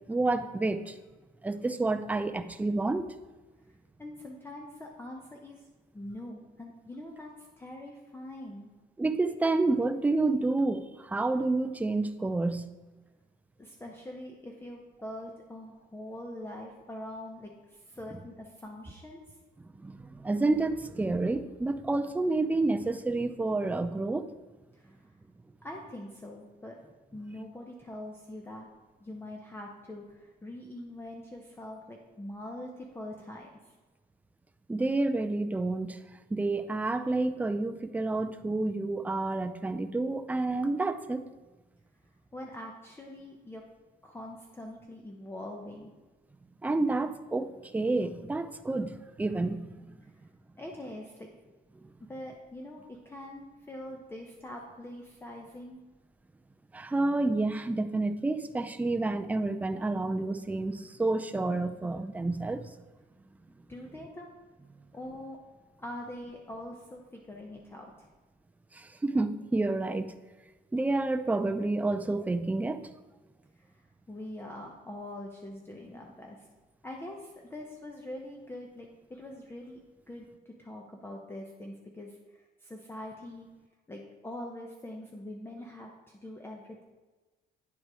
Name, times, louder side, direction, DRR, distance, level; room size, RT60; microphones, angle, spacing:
voice 1, 0.1-1.0 1.4-3.1 9.0-12.7 19.8-24.3 34.7-36.0 36.3-41.2 46.6-49.9 56.7-62.7 68.7-70.1 70.7-72.8, right 2 dB, 10° right, 0.4 m, -29 dB
voice 2, 4.0-5.6 5.9-7.3 7.6-8.7 13.6-19.2 24.7-25.1 25.6-26.8 27.1-28.7 29.0-33.7 42.3-43.6 44.0-45.9 50.6-51.3 52.1-55.8 63.7-64.3 64.9-65.4 65.8-68.1 73.7-76.5 76.8-79.8 80.1-83.5 83.9-86.8, left 1 dB, 15° left, 0.8 m, -43 dB
9.4 x 4.0 x 4.8 m
cardioid pair, 110°, 17 cm